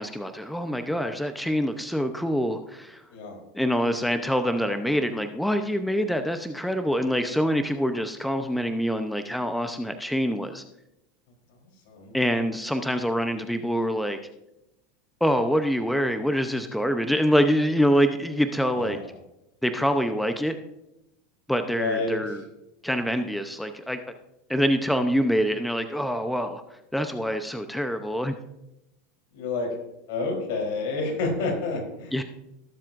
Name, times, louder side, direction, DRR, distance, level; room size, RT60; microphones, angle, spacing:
voice 1, 0.0-3.0 3.5-10.6 12.1-14.2 15.2-19.0 19.6-20.5 21.5-22.4 22.8-24.2 24.5-26.6 26.9-28.4 32.1-32.2, equal, 5° left, 8 dB, 0.7 m, -25 dB
voice 2, 11.9-12.2 18.7-19.0 21.7-22.3 29.3-29.7 30.1-32.2, left 3 dB, 70° left, 1 dB, 3.7 m, -29 dB
19.5 x 7.4 x 2.6 m, 0.88 s
hypercardioid pair, 110°, 0 cm